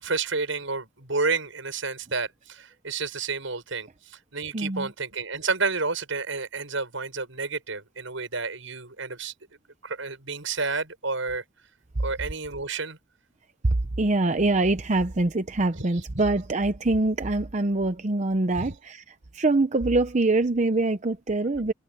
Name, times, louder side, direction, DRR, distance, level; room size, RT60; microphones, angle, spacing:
voice 1, 0.0-3.9 4.3-9.3 9.8-11.4 12.0-13.0 15.8-16.2 18.6-18.7, right 4 dB, 75° right, 6.9 m, -30 dB
voice 2, 4.5-4.9 14.0-21.7, right 2 dB, 35° right, 0.7 m, -24 dB
head